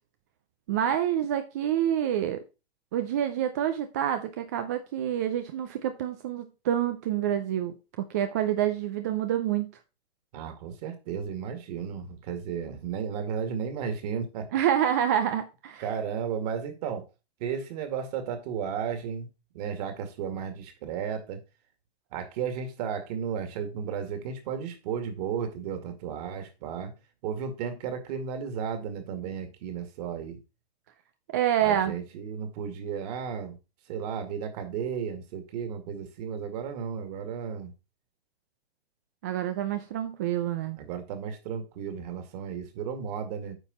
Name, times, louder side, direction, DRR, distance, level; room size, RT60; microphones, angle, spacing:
voice 1, 0.7-2.4 2.9-7.7 8.1-9.7 14.5-15.8 31.3-31.9 39.2-40.8, right 10 dB, 20° right, 0.3 m, -27 dB
voice 2, 10.3-14.5 15.8-17.0 17.4-19.3 19.5-21.4 22.1-26.9 27.2-30.4 31.6-33.6 33.9-37.7 40.8-43.5, right 7 dB, 40° right, 2.2 m, -34 dB
9.1 x 5.7 x 4.1 m
hypercardioid pair, 130°, 31 cm